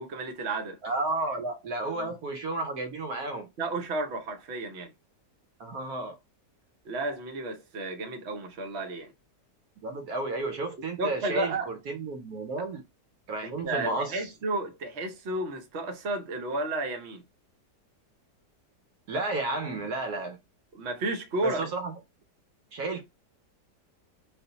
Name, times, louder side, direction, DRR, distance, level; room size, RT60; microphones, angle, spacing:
voice 1, 0.0-0.8 1.9-2.1 3.6-4.9 6.8-9.1 11.0-11.7 13.4-17.2 20.7-21.7, right 2 dB, 50° right, 0.9 m, -32 dB
voice 2, 0.8-3.5 5.6-6.2 9.8-12.8 13.3-14.3 19.1-20.4 21.4-22.0 22.7-23.0, right 2 dB, 70° right, 1.2 m, -32 dB
3.4 x 2.5 x 3.9 m
omnidirectional pair, 1.8 m